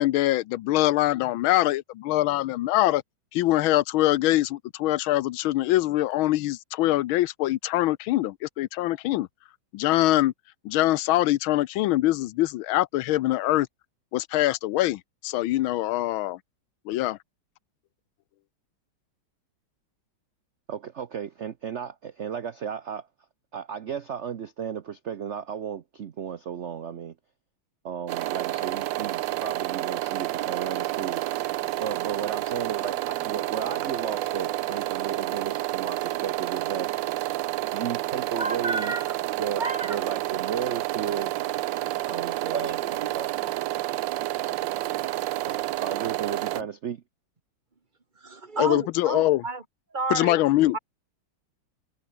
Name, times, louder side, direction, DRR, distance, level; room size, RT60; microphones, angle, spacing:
voice 1, 0.0-3.0 3.3-9.3 9.7-10.3 10.6-13.7 14.1-16.4 16.9-17.2 48.6-49.4 50.1-50.8, left 16 dB, 80° left, 1.5 m, -23 dB
voice 2, 20.7-23.1 23.5-27.1 27.8-31.2 31.8-36.9 37.7-38.9 39.4-41.3 42.0-43.3 45.5-47.0, right 8 dB, 55° right, 0.8 m, -34 dB
sound 1, 28.1-46.6, right 15 dB, 75° right, 1.2 m, -29 dB
sound 2, 32.3-35.4, right 2 dB, 40° right, 8.1 m, -47 dB
voice 3, 38.4-39.2 39.6-40.1 42.5-42.7 43.0-43.1 43.4-43.5 48.2-49.6 49.9-50.8, right 3 dB, 25° right, 1.9 m, -31 dB
omnidirectional pair, 2.2 m